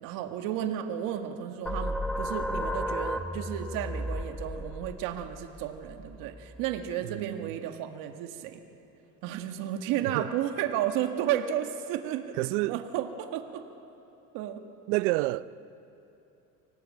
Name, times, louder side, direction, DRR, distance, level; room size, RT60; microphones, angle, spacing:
voice 1, 0.0-8.6 9.2-12.3 12.7-13.6 14.3-14.6, right 10 dB, 70° right, 1.8 m, -33 dB
sound 1, 1.7-6.9, equal, ahead, 1.0 m, -34 dB
voice 2, 7.0-7.5 10.0-10.3 12.3-12.8 14.9-15.5, right 20 dB, 90° right, 0.7 m, -29 dB
24.5 x 19.0 x 8.6 m
cardioid pair, 130°, 34 cm